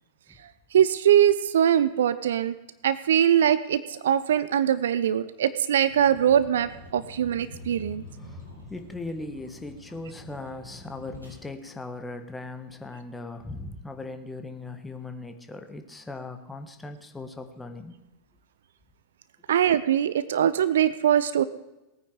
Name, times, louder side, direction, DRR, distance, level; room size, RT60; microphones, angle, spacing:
voice 1, 0.7-2.5 2.8-8.0 19.5-21.4, right 10 dB, 60° right, 15 dB, 0.6 m, -22 dB
Vehicle, 5.9-11.4, left 1 dB, 80° right, 5.0 m, -46 dB
voice 2, 8.7-18.0, left 2 dB, 10° left, 6 dB, 1.5 m, -39 dB
19.5 x 9.3 x 4.9 m, 1.0 s
figure-of-eight pair, 90°, 0 cm